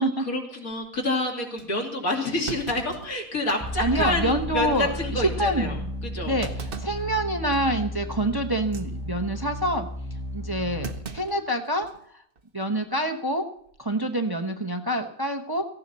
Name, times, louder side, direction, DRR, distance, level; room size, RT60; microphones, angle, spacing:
voice 1, 0.0-5.8 6.0-6.4, left 2 dB, 85° left, 0 dB, 3.5 m, -28 dB
Thump thud, 0.7-1.0 1.6-1.7 2.5-3.8 4.2-4.3 4.8-5.0 6.4-7.1 7.5-7.8 8.6-8.9 10.8-12.0 12.4-12.5 13.6-13.9, right 5 dB, 45° right, 1.2 m, -39 dB
sound 1, 3.6-11.0, left 1 dB, 5° left, 2.1 m, -33 dB
voice 2, 3.8-5.8 6.2-6.5 6.8-9.9 10.3-11.9 12.5-13.5 13.8-15.7, right 1 dB, 20° right, 5 dB, 0.8 m, -26 dB
17.5 x 15.0 x 4.2 m, 0.65 s
omnidirectional pair, 1.5 m